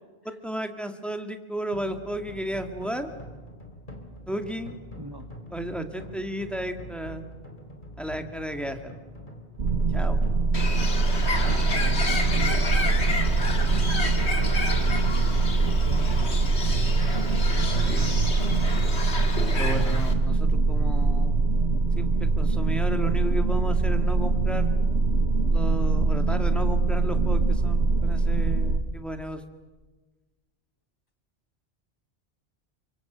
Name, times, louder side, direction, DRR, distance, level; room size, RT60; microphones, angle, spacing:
voice 1, 0.3-3.1 4.3-4.7 5.5-7.3 8.0-8.8 9.9-10.2 17.7-18.2 19.5-21.4 22.0-24.7 25.5-29.4, equal, ahead, 6 dB, 2.0 m, -33 dB
sound 1, 1.7-14.5, left 1 dB, 50° left, 3.9 m, -44 dB
sound 2, 9.6-28.8, right 3 dB, 85° right, 1.7 m, -23 dB
Bird, 10.5-20.1, left 3 dB, 90° left, 2.4 m, -31 dB
voice 2, 11.3-13.2 14.0-15.0 15.6-16.1, right 2 dB, 20° right, 5 dB, 1.3 m, -41 dB
29.0 x 24.5 x 8.0 m, 1.2 s
omnidirectional pair, 1.1 m